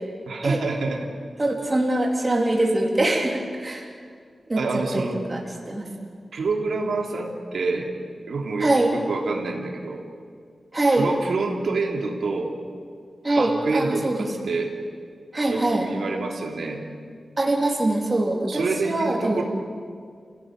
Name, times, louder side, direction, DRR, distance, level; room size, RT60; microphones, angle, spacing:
voice 1, 0.3-1.1 4.6-5.2 6.3-7.9 8.3-10.0 10.9-12.5 13.3-14.7 15.5-16.8 18.5-19.4, right 3 dB, 85° right, 1 dB, 3.2 m, -27 dB
voice 2, 1.4-3.9 4.5-5.4 5.7-5.9 8.6-8.9 10.7-11.1 13.2-14.3 15.3-15.8 17.4-19.4, right 2 dB, 25° right, -1 dB, 3.4 m, -23 dB
29.0 x 17.0 x 9.4 m, 2.1 s
wide cardioid pair, 160°, 0 cm